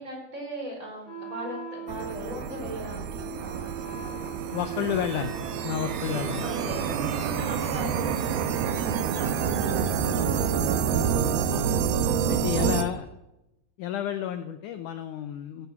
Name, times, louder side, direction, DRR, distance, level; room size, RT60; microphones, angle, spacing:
voice 1, 0.0-5.3 5.9-11.0 12.6-12.8, right 1 dB, 20° right, 0 dB, 4.9 m, -40 dB
Wind instrument woodwind instrument, 1.0-7.0, right 6 dB, 25° left, 3.9 m, -40 dB
sound 1, 1.9-12.8, right 7 dB, 80° right, 2.8 m, -28 dB
sound 2, 4.4-10.3, right 6 dB, 60° right, 1.3 m, -44 dB
voice 2, 4.5-5.3 5.6-6.4 11.5-11.8 12.3-13.1 13.8-15.7, left 10 dB, 75° left, 9 dB, 1.9 m, -31 dB
16.5 x 11.0 x 5.9 m, 0.91 s
omnidirectional pair, 4.3 m